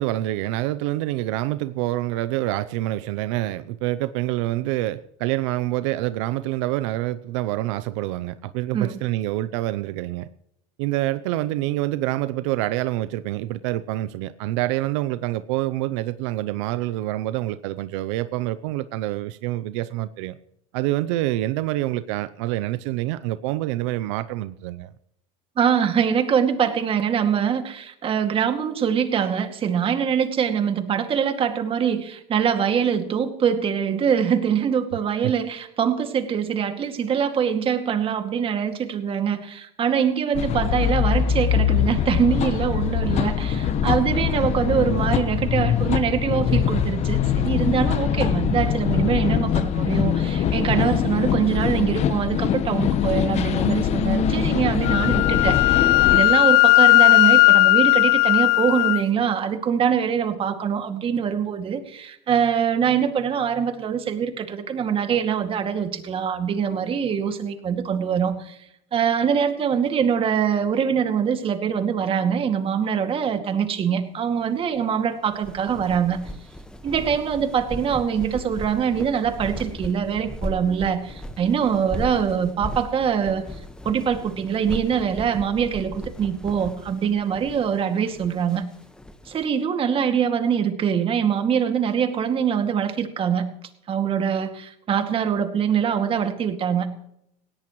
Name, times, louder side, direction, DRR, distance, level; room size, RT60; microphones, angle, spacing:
voice 1, 0.0-10.3 10.8-20.4 20.7-24.9, right 16 dB, 85° right, 14 dB, 0.6 m, -26 dB
voice 2, 25.6-68.6 68.9-76.2 76.8-83.4 83.8-88.6 89.3-93.5 93.9-96.9, right 7 dB, 35° right, 6 dB, 2.2 m, -23 dB
sound 1, 40.3-56.2, left 8 dB, 45° left, 1.2 m, -22 dB
Wind instrument woodwind instrument, 54.8-59.0, left 26 dB, 75° left, 0.5 m, -16 dB
sound 2, 75.3-89.5, left 1 dB, 5° left, 1.3 m, -37 dB
19.0 x 17.0 x 3.1 m, 0.77 s
supercardioid pair, 115°, 15 cm